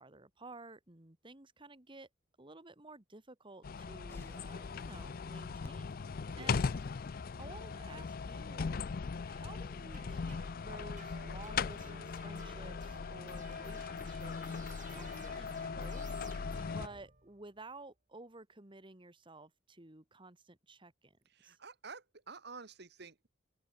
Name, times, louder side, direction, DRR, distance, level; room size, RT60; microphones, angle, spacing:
voice 1, 0.0-2.1 2.4-6.6 7.4-8.8 9.2-21.2 21.4-21.6, right 2 dB, 30° right, 1.9 m, -53 dB
sound 1, 3.6-16.9, left 5 dB, 50° left, 0.5 m, -39 dB
sound 2, 4.1-10.4, left 1 dB, 15° left, 7.2 m, -64 dB
voice 2, 6.3-6.6 21.3-23.3, right 4 dB, 60° right, 1.7 m, -50 dB
sound 3, 9.9-17.6, right 3 dB, 45° right, 3.6 m, -55 dB
open air
head